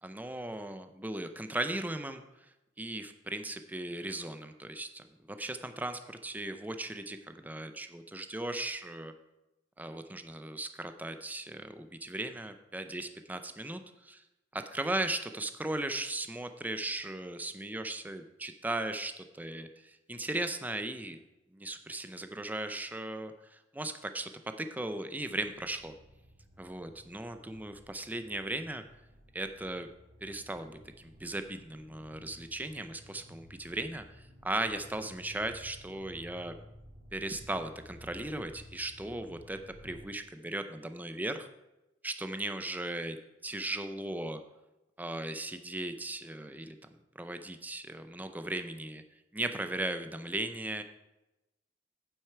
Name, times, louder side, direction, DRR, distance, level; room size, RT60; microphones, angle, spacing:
voice 1, 0.0-9.1 9.8-14.2 14.5-21.2 21.5-26.0 26.6-28.8 29.3-29.9 30.2-36.5 37.1-41.5 42.0-44.4 45.0-49.0 49.3-50.8, right 1 dB, 10° right, 8 dB, 0.5 m, -37 dB
ambience deep rumble, 25.1-40.0, equal, 60° right, 3.8 m, -55 dB
9.0 x 8.2 x 4.5 m, 0.96 s
head